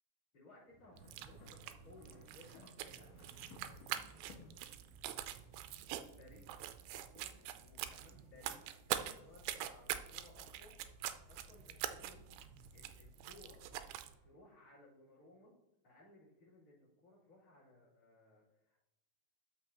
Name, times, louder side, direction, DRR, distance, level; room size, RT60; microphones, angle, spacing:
voice 1, 0.3-4.0 6.1-6.5 6.9-10.8 11.3-12.3 12.7-13.6 14.2-15.5 15.8-18.8, left 2 dB, 40° left, -12 dB, 4.0 m, -62 dB
sound 1, 0.7-4.8, left 3 dB, 75° left, 2.5 m, -59 dB
sound 2, 1.0-14.2, right 12 dB, 85° right, 2.5 m, -45 dB
sound 3, 3.5-14.1, left 2 dB, 10° right, 1.8 m, -64 dB
13.0 x 5.4 x 2.9 m, 0.96 s
omnidirectional pair, 4.3 m